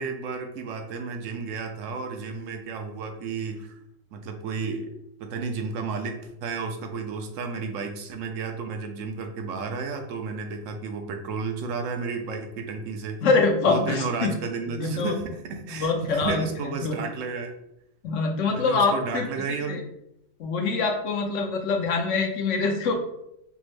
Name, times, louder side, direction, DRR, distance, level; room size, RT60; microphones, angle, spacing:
voice 1, 0.0-3.8 4.1-4.9 5.2-13.2 13.6-17.5 18.5-19.8, right 4 dB, 75° right, 4 dB, 1.0 m, -32 dB
voice 2, 13.2-14.3 14.8-15.2 15.7-16.5 16.8-17.0 18.0-19.8 20.4-22.9, left 4 dB, 70° left, 2 dB, 1.0 m, -24 dB
5.9 x 2.1 x 3.1 m, 0.82 s
omnidirectional pair, 1.4 m